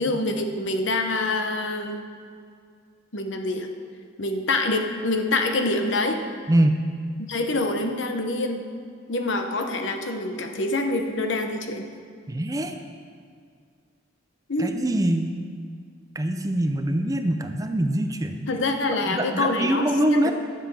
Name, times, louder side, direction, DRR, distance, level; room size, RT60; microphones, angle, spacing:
voice 1, 0.0-2.0 3.1-3.7 4.2-6.2 7.3-8.7 9.1-11.9 14.5-14.7 18.5-20.3, left 2 dB, 65° left, 5 dB, 0.9 m, -26 dB
voice 2, 6.5-6.8 12.3-12.7 14.6-15.3 16.2-18.5 19.1-20.3, right 1 dB, 15° right, 6 dB, 0.5 m, -23 dB
11.5 x 7.2 x 5.5 m, 2.1 s
head